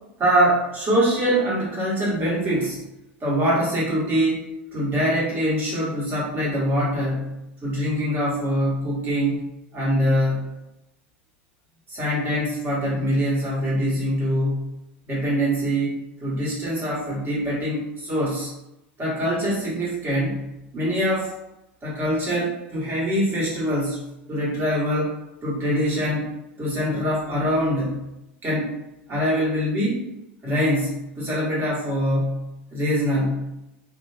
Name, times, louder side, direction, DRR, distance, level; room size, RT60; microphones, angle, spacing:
voice 1, 0.2-2.8 3.2-9.4 9.7-10.5 11.9-14.7 15.1-18.5 19.0-21.3 21.8-28.1 28.4-28.7 29.1-30.0 30.4-33.5, equal, 30° right, -6 dB, 1.2 m, -24 dB
2.8 x 2.1 x 2.2 m, 0.89 s
hypercardioid pair, 90°, 6 cm